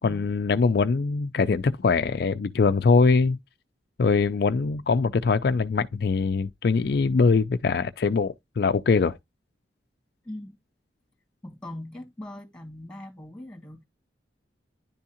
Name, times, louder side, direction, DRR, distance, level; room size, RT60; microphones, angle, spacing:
voice 1, 0.0-3.4 4.0-9.2, left 4 dB, 60° left, 0.4 m, -22 dB
voice 2, 10.2-10.6 11.4-13.8, left 1 dB, 5° left, 1.7 m, -40 dB
10.5 x 3.6 x 2.8 m
head